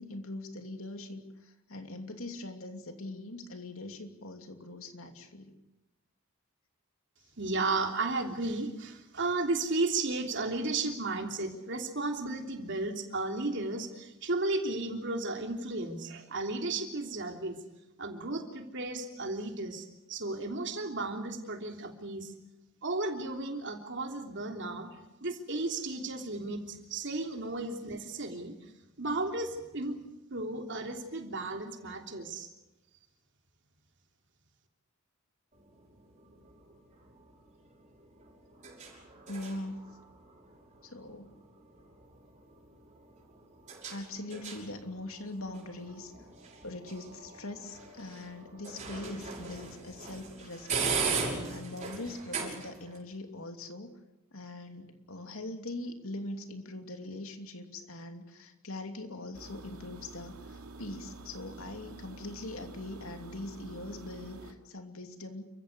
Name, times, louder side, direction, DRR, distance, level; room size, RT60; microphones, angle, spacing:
voice 1, 0.0-5.6 39.3-40.0 40.8-41.4 43.9-46.1 46.6-51.0 51.5-53.9 54.3-65.5, left 2 dB, 70° left, 6 dB, 2.9 m, -42 dB
voice 2, 7.4-17.6 18.0-22.3 22.8-24.9 25.2-28.5 29.0-30.0 30.3-32.5, right 2 dB, 55° right, 4 dB, 3.3 m, -34 dB
sound 1, 35.5-53.0, right 5 dB, 35° right, 6.3 m, -40 dB
sound 2, 59.3-64.5, right 3 dB, 80° right, 2.6 m, -48 dB
29.5 x 15.0 x 8.4 m, 0.99 s
head